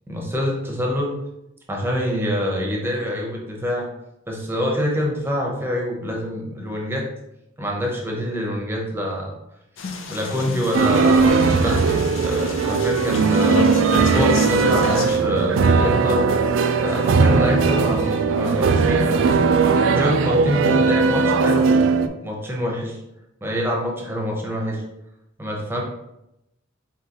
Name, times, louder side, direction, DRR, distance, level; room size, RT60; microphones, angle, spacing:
voice 1, 0.1-1.2 1.7-3.9 4.3-7.1 7.6-9.3 10.1-13.7 14.1-16.3 16.7-19.3 19.9-23.0 23.4-24.8 25.4-25.8, equal, 10° right, -1 dB, 0.8 m, -25 dB
sound 1, 9.8-15.2, left 3 dB, 75° left, 0.6 m, -31 dB
sound 2, 10.7-22.1, right 4 dB, 70° right, 0.3 m, -18 dB
4.4 x 3.8 x 2.9 m, 0.86 s
head